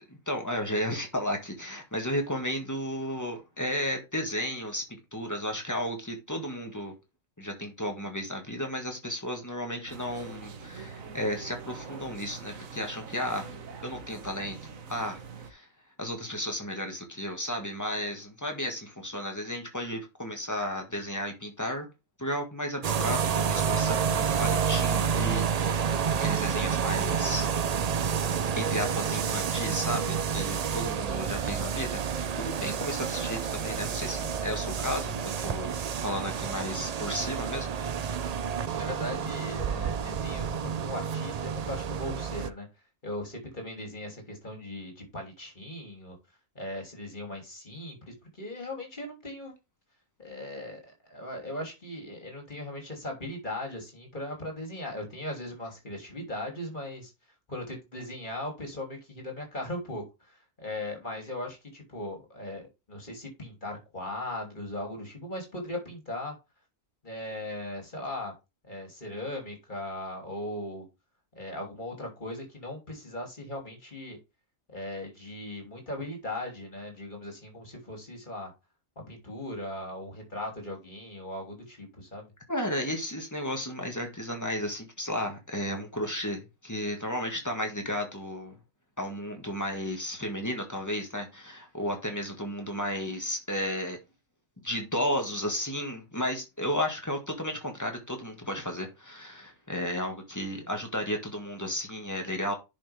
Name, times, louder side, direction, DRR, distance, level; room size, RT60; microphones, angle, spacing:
voice 1, 0.0-4.8 5.1-6.9 7.4-13.5 13.8-14.6 14.9-15.7 16.0-21.9 22.2-25.8 26.1-28.1 28.6-35.7 36.0-38.2 82.5-88.6 89.0-94.0 94.6-102.5, equal, 15° left, 1.9 m, -33 dB
sound 1, 9.9-15.5, right 5 dB, 90° right, 1.5 m, -44 dB
sound 2, 22.8-42.5, right 7 dB, 70° right, 0.3 m, -29 dB
voice 2, 38.6-42.7 43.0-46.2 46.5-49.5 50.2-57.1 57.5-66.3 67.0-68.3 68.6-70.8 71.3-74.2 74.7-78.5 79.1-82.3, left 1 dB, 35° left, 3.3 m, -38 dB
10.0 x 5.5 x 3.5 m
omnidirectional pair, 1.4 m